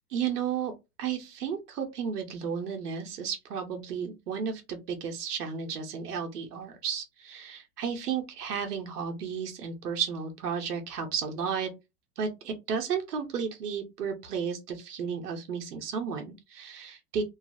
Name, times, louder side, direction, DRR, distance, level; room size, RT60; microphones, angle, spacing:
voice 1, 0.1-0.7 1.0-11.7 12.2-17.2, right 7 dB, 90° right, 0.7 m, -33 dB
2.6 x 2.3 x 2.5 m
hypercardioid pair, 95°, 46 cm